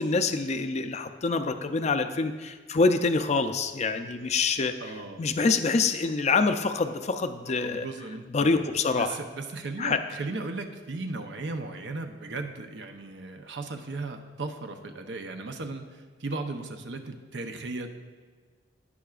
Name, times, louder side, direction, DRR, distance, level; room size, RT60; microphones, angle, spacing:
voice 1, 0.0-4.7 5.2-7.9 8.3-9.2 9.8-10.0, left 4 dB, 40° left, 8 dB, 0.5 m, -26 dB
voice 2, 4.8-5.2 7.6-8.6 9.0-18.0, right 3 dB, 75° right, 5 dB, 0.7 m, -36 dB
17.0 x 5.7 x 2.4 m, 1.5 s
head